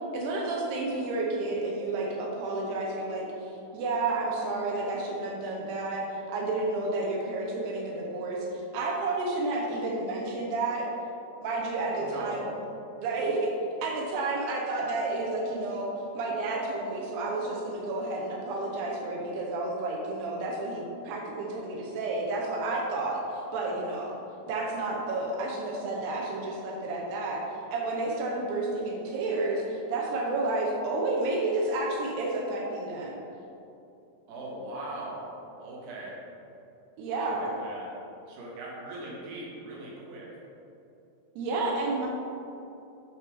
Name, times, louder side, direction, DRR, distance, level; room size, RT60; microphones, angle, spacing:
voice 1, 0.1-10.9 11.4-12.5 13.0-13.5 13.8-24.2 24.5-27.4 27.7-33.2 37.0-37.6 41.4-42.1, right 2 dB, 85° right, -2 dB, 2.8 m, -31 dB
voice 2, 11.8-12.5 34.3-35.3 35.6-36.1 37.2-37.9 38.3-40.3, right 1 dB, 65° right, -5 dB, 2.8 m, -40 dB
8.9 x 3.4 x 4.7 m, 2.8 s
omnidirectional pair, 4.6 m